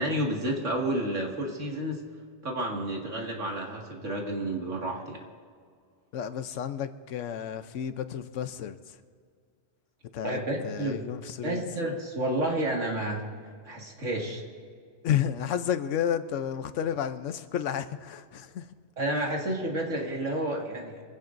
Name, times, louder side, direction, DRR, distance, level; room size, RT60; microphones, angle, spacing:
voice 1, 0.0-2.0 2.4-5.2 10.2-11.0 11.4-13.3 13.7-14.4 19.0-21.0, right 1 dB, 85° right, 2.5 m, -30 dB
voice 2, 6.1-8.8 10.1-11.6 15.0-18.7, left 9 dB, 85° left, 1.1 m, -31 dB
25.0 x 16.0 x 2.6 m
omnidirectional pair, 1.2 m